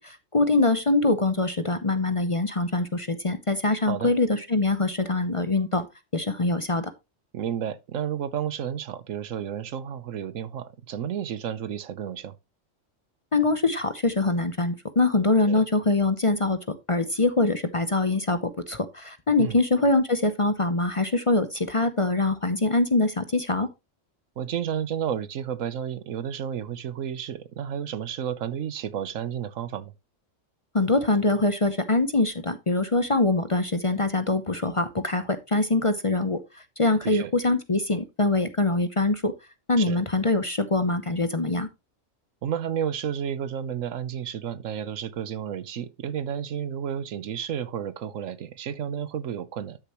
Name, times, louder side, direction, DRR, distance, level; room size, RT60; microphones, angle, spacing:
voice 1, 0.0-5.9 6.1-6.9 13.3-23.7 30.7-39.3 39.7-41.7, left 2 dB, 30° left, 0.7 m, -24 dB
voice 2, 7.3-12.3 15.5-15.6 19.4-19.6 24.4-29.9 37.0-37.3 39.8-40.0 42.4-49.8, right 9 dB, 80° right, 1.2 m, -31 dB
12.0 x 6.9 x 3.0 m
omnidirectional pair, 1.3 m